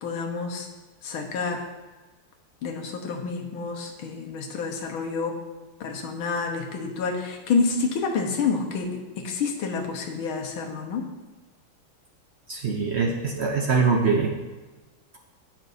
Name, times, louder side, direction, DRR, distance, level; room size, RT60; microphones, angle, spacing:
voice 1, 0.0-0.7 1.0-1.6 2.6-5.4 5.8-11.1, left 4 dB, 85° left, 3 dB, 1.9 m, -28 dB
voice 2, 12.5-14.3, right 4 dB, 90° right, 1 dB, 0.5 m, -23 dB
17.0 x 6.1 x 2.7 m, 1.2 s
omnidirectional pair, 2.2 m